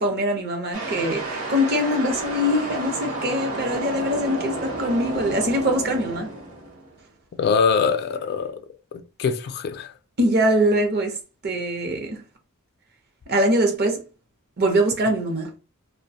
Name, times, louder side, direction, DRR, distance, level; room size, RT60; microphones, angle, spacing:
voice 1, 0.0-6.3 10.2-11.2 11.4-12.2 13.3-14.0 14.6-15.5, equal, 50° right, 0.7 m, -23 dB
sound 1, 0.7-7.0, right 2 dB, 85° right, 1.0 m, -31 dB
voice 2, 7.3-8.6 8.9-9.9, left 5 dB, 50° left, 0.3 m, -23 dB
2.4 x 2.2 x 2.7 m
head